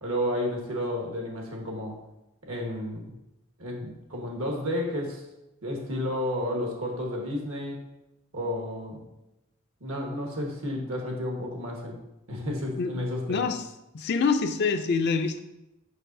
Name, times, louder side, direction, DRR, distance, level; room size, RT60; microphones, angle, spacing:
voice 1, 0.0-2.0 2.4-3.1 3.6-5.2 5.6-7.8 8.3-9.0 9.8-12.0 12.3-13.5, left 1 dB, 75° right, 0 dB, 1.4 m, -31 dB
voice 2, 13.3-13.6 13.9-15.4, left 5 dB, 50° left, 7 dB, 0.4 m, -25 dB
6.5 x 5.7 x 2.6 m, 0.92 s
head